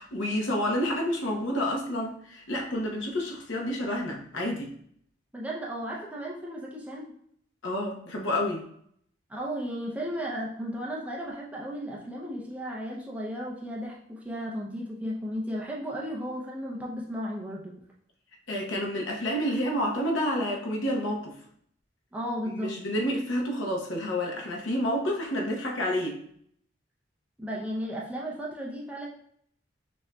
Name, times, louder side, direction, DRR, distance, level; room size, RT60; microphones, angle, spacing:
voice 1, 0.0-4.8 7.6-8.6 18.5-21.4 22.5-26.2, equal, 75° left, -1 dB, 0.9 m, -29 dB
voice 2, 5.3-7.1 9.3-17.7 22.1-22.8 27.4-29.1, equal, 5° right, -4 dB, 0.5 m, -34 dB
6.1 x 2.7 x 2.2 m, 0.67 s
head